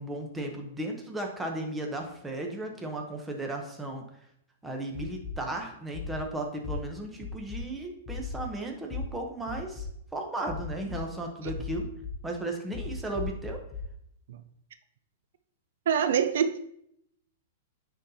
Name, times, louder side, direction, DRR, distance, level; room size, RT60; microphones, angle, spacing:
voice 1, 0.0-4.0 4.6-9.9 10.1-11.8 12.2-13.6, right 2 dB, 10° right, 2 dB, 0.9 m, -35 dB
sound 1, 4.9-5.3 5.9-6.2 6.6-6.7 7.2-7.6 8.1-8.4 8.9-9.0 9.5-9.9 10.5-11.0 11.5-12.1 12.7-13.8, left 8 dB, 35° left, 0.9 m, -37 dB
voice 2, 15.9-16.6, right 7 dB, 70° right, 11 dB, 0.4 m, -25 dB
9.6 x 3.8 x 2.8 m, 0.73 s
hypercardioid pair, 145°, 0 cm